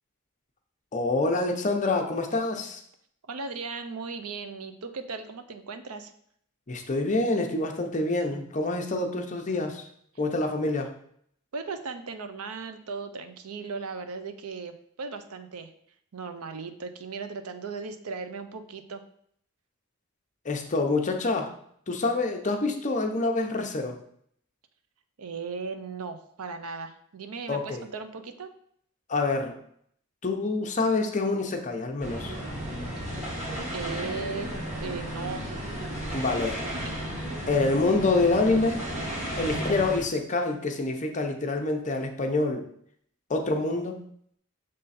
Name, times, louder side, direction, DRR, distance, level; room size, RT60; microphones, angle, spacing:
voice 1, 0.9-2.8 6.7-9.9 10.2-10.9 20.4-21.5 21.9-23.9 27.5-27.8 29.1-29.6 30.2-32.3 36.1-36.6 37.5-38.8 39.4-42.7 43.3-43.9, left 3 dB, 35° left, 3 dB, 0.7 m, -26 dB
voice 2, 3.3-6.1 11.5-14.7 15.0-15.7 16.1-19.0 25.2-28.5 33.0-33.1 33.7-34.5 34.8-35.5 36.7-37.0 39.2-39.5, right 4 dB, 90° right, 9 dB, 0.6 m, -37 dB
sound 1, 32.0-40.0, equal, 35° right, 1.7 m, -34 dB
6.6 x 3.7 x 4.2 m, 0.66 s
head